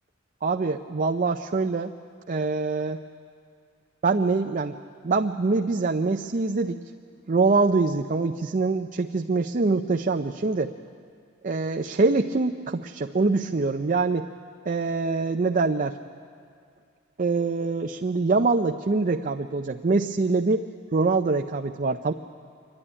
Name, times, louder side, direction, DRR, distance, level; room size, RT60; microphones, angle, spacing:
voice 1, 0.4-1.9 2.3-3.0 4.0-4.8 5.0-6.8 7.3-10.7 11.4-14.3 14.7-16.0 17.2-20.6 20.9-22.1, right 3 dB, 40° right, 5 dB, 0.5 m, -24 dB
27.0 x 11.5 x 10.0 m, 2.3 s
head